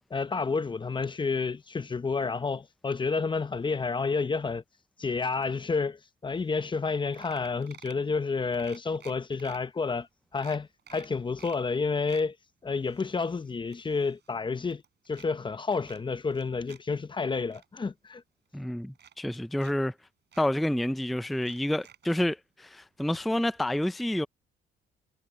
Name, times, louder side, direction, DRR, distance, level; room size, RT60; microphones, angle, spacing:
voice 1, 0.1-4.6 5.0-10.1 10.3-12.3 12.6-14.8 15.1-18.2, left 4 dB, 25° left, 0.8 m, -30 dB
sound 1, 6.4-6.5 6.7-6.9 7.1-8.1 8.5-9.6 10.0-10.1 10.4-11.6 11.9-12.3 12.8-14.3 14.6-15.3 15.8-16.8 17.2-17.7 18.5-18.6 18.9-19.7 20.0-20.1 20.3-20.5 21.3-22.3 23.1-23.2 23.5-23.6, right 9 dB, 60° right, 5.9 m, -53 dB
voice 2, 18.5-19.9 20.4-24.3, left 1 dB, ahead, 0.5 m, -29 dB
cardioid pair, 90°, 20 cm